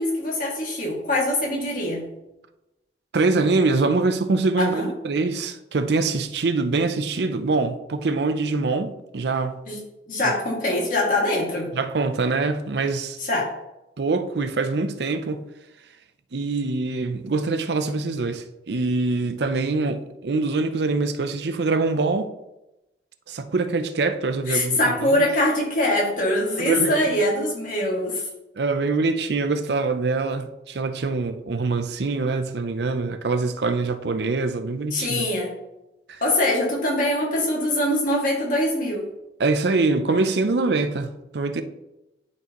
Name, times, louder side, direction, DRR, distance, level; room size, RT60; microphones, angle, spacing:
voice 1, 0.0-2.0 4.6-4.9 9.7-9.8 10.1-11.7 13.2-13.5 24.5-28.2 34.9-35.5 36.2-39.0, left 1 dB, 50° left, 2.2 m, -23 dB
voice 2, 3.1-9.6 10.2-10.3 11.7-13.2 14.0-15.4 16.3-22.3 23.3-25.3 26.6-26.9 28.6-35.3 36.1-36.2 39.4-41.6, right 3 dB, 70° right, 0.5 m, -24 dB
11.0 x 4.5 x 3.0 m
head